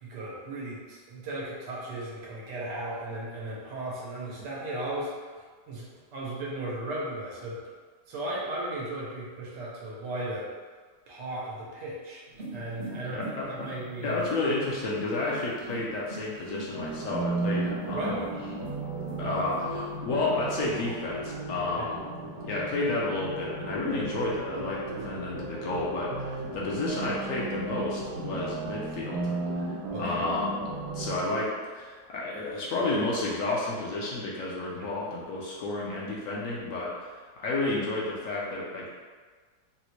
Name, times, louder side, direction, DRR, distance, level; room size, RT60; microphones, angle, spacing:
voice 1, 0.0-5.4 5.7-7.6 8.1-10.5 11.1-12.2 12.5-14.2 17.9-18.3 21.8-21.9 29.9-30.2 34.8-34.9, right 1 dB, 85° right, -5 dB, 1.4 m, -36 dB
sound 1, 12.3-20.0, right 2 dB, 50° right, 0.8 m, -44 dB
voice 2, 12.9-13.7 14.0-18.2 19.2-22.0 22.4-30.6 30.9-38.9, left 2 dB, 65° left, -5 dB, 0.9 m, -31 dB
sound 2, 16.7-31.2, right 2 dB, 70° right, 1.2 m, -35 dB
4.0 x 2.1 x 2.9 m, 1.5 s
omnidirectional pair, 1.8 m